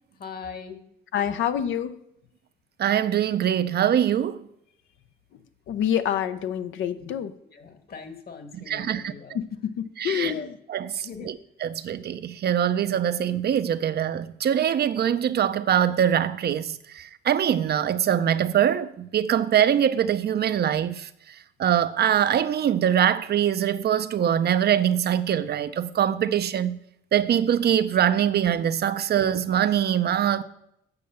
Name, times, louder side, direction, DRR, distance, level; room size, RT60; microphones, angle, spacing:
voice 1, 0.2-0.8 7.0-7.1 7.5-9.4 10.2-10.5 11.0-11.3, left 5 dB, 50° left, 1.6 m, -40 dB
voice 2, 1.1-2.0 5.7-7.3 9.3-10.5, left 9 dB, 75° left, 0.8 m, -27 dB
voice 3, 2.8-4.4 8.7-9.1 10.0-10.3 10.7-21.1 21.6-26.8 27.1-30.4, right 9 dB, 55° right, 0.6 m, -23 dB
8.2 x 6.5 x 6.8 m
cardioid pair, 90°, 20 cm